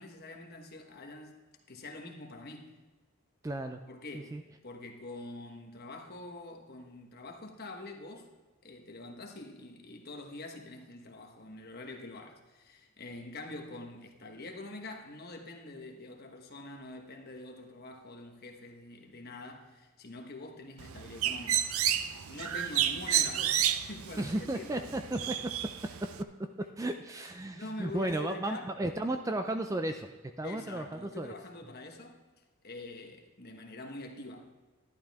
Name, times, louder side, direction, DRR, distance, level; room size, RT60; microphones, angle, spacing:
voice 1, 0.0-1.4 1.7-2.7 3.9-4.3 4.6-8.3 8.6-21.7 22.3-25.3 27.5-28.7 30.4-32.2 32.6-34.5, left 2 dB, 45° left, 3 dB, 1.2 m, -45 dB
voice 2, 3.4-3.8 4.1-4.4 24.2-25.3 26.6-30.1 30.4-31.3, right 1 dB, 15° right, 7 dB, 0.3 m, -34 dB
Bird, 20.8-26.2, right 10 dB, 70° right, 0.5 m, -31 dB
11.5 x 11.5 x 3.5 m, 1.2 s
head